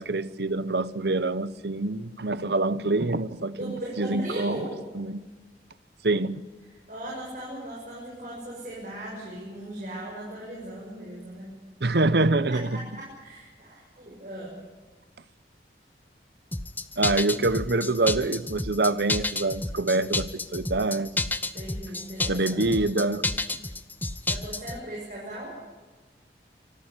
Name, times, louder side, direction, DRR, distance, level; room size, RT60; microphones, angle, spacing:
voice 1, 0.0-4.6 4.9-5.2 6.0-6.4 11.8-12.8 17.0-21.3 22.3-23.3, right 2 dB, 70° right, 0.9 m, -26 dB
voice 2, 3.5-4.7 6.9-11.5 12.5-14.6 21.5-22.8 24.3-25.6, right 1 dB, 45° right, 6.7 m, -38 dB
sound 1, 16.5-24.8, left 2 dB, 10° left, 0.7 m, -30 dB
25.5 x 14.0 x 10.0 m
head